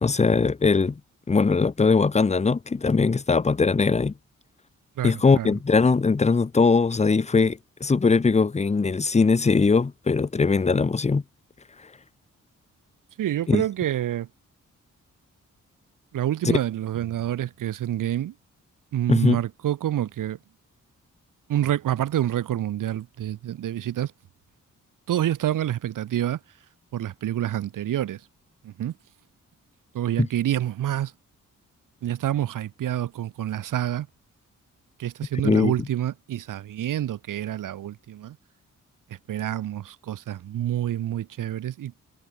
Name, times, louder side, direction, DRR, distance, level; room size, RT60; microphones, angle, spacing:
voice 1, 0.0-1.0 1.3-4.1 5.0-11.2 13.5-13.6 16.4-16.6 19.1-19.4 35.4-35.7, left 4 dB, 20° left, 0.7 m, -20 dB
voice 2, 5.0-5.5 13.2-14.3 16.1-18.3 18.9-20.4 21.5-24.1 25.1-26.4 26.9-28.2 28.6-28.9 29.9-31.1 32.0-34.1 35.0-38.4 39.3-41.9, right 12 dB, 75° right, 1.0 m, -27 dB
cardioid pair, 60°, 32 cm